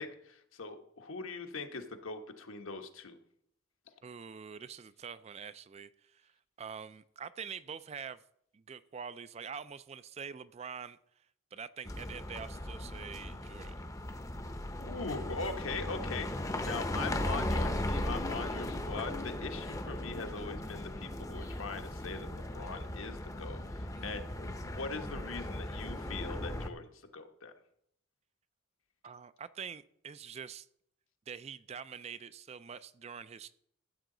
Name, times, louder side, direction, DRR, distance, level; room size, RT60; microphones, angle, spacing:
voice 1, 0.0-3.2 14.8-27.5, left 4 dB, 80° left, 5 dB, 1.2 m, -41 dB
voice 2, 4.0-6.3 6.6-8.2 8.5-11.0 11.5-13.8 23.9-24.1 29.0-30.7 31.3-33.5, right 6 dB, 30° right, 15 dB, 0.3 m, -45 dB
sound 1, 11.9-26.7, left 1 dB, 15° left, 0.6 m, -37 dB
14.0 x 8.2 x 3.9 m, 0.71 s
head